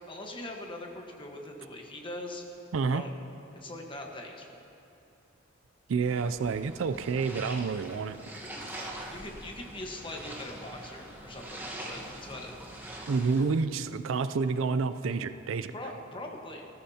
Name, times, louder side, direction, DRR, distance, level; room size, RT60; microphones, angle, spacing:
voice 1, 0.1-2.4 2.8-3.1 3.6-4.6 8.8-12.5 15.7-16.7, left 1 dB, 25° left, 1 dB, 1.3 m, -42 dB
voice 2, 2.7-3.0 5.9-8.2 13.1-15.7, right 4 dB, 70° right, 12 dB, 0.4 m, -29 dB
sound 1, 6.1-13.5, right 1 dB, 10° right, 1.3 m, -43 dB
20.0 x 14.0 x 2.8 m, 2.8 s
head